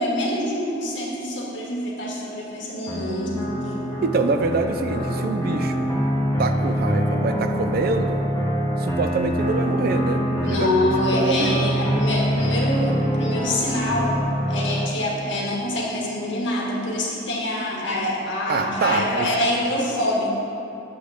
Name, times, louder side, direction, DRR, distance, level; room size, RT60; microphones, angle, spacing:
voice 1, 0.0-3.4 3.6-3.8 10.4-14.2 14.5-20.3, left 1 dB, 90° left, -3 dB, 1.4 m, -25 dB
sound 1, 2.9-14.9, equal, 15° left, 0.9 m, -24 dB
voice 2, 4.0-5.9 6.4-8.2 8.8-10.7 11.1-11.7 18.5-19.3, right 3 dB, 55° right, 7 dB, 0.4 m, -25 dB
8.4 x 3.2 x 6.4 m, 2.9 s
head